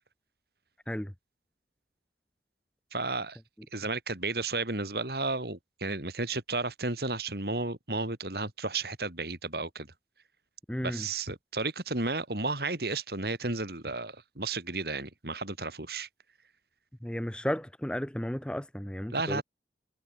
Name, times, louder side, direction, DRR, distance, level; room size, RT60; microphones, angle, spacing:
voice 1, 2.9-3.4 3.7-9.9 10.8-16.1 19.1-19.4, right 3 dB, 60° right, 3.2 m, -33 dB
voice 2, 10.7-11.1 17.0-19.4, equal, 5° left, 0.6 m, -33 dB
head